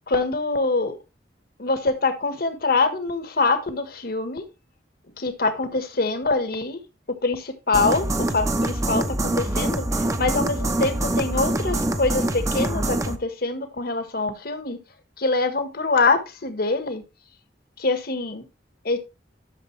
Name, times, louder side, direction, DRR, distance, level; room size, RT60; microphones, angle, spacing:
voice 1, 0.1-1.0 1.6-4.4 5.2-6.8 7.2-14.8 15.2-17.0 17.8-18.4 18.8-19.0, left 3 dB, 55° left, 9 dB, 1.5 m, -24 dB
sound 1, 7.7-13.2, right 1 dB, 20° right, 0.8 m, -25 dB
11.5 x 6.8 x 3.3 m, 0.26 s
head